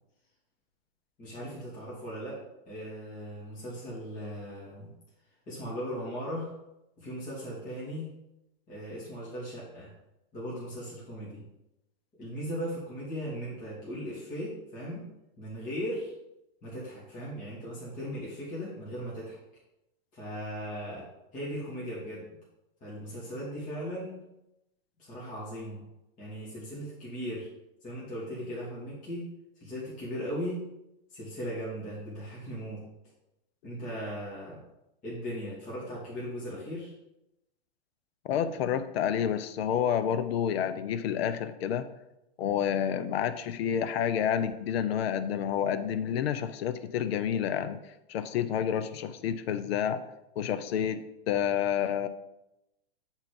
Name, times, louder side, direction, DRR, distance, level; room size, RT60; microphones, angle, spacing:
voice 1, 1.2-4.9 5.5-6.5 7.0-8.1 8.7-9.9 10.3-11.4 12.2-15.1 15.4-16.1 16.6-19.4 20.1-21.1 21.3-22.3 22.8-24.2 25.0-25.8 26.2-27.5 27.8-29.3 29.6-30.6 31.1-32.8 33.6-34.6 35.0-36.9, equal, 25° left, -8 dB, 2.7 m, -38 dB
voice 2, 38.2-41.9 42.4-47.8 48.1-50.1 50.4-52.1, left 9 dB, 75° left, 11 dB, 0.7 m, -29 dB
7.0 x 4.5 x 5.2 m, 0.89 s
hypercardioid pair, 135°, 31 cm